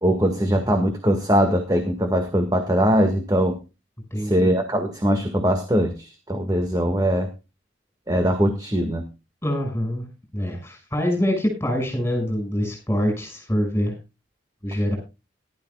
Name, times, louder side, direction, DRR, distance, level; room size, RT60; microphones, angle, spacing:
voice 1, 0.0-3.6 4.2-7.3 8.1-9.0, equal, 20° right, 5 dB, 1.8 m, -21 dB
voice 2, 4.1-4.5 9.4-10.1 10.3-13.9 14.6-15.0, equal, 15° left, 3 dB, 6.0 m, -25 dB
19.5 x 12.5 x 2.3 m, 0.28 s
head